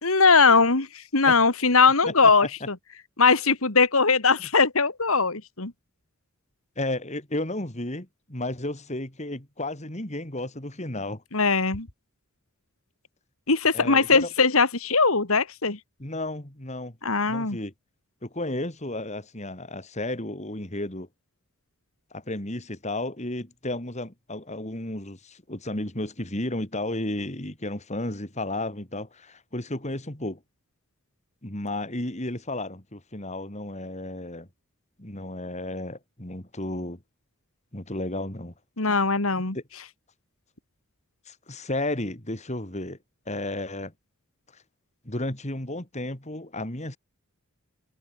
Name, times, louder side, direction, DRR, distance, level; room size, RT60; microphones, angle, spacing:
voice 1, 0.0-2.8 3.2-5.7 11.3-11.9 13.5-15.8 17.0-17.6 38.8-39.6, left 4 dB, 70° left, 2.5 m, -20 dB
voice 2, 6.8-11.2 13.7-14.3 16.0-17.0 17.2-17.7 18.2-21.1 22.1-30.4 31.4-34.5 35.0-37.0 37.7-38.5 39.5-39.6 41.3-43.0 43.3-43.9 45.0-47.0, left 1 dB, 30° left, 3.1 m, -33 dB
head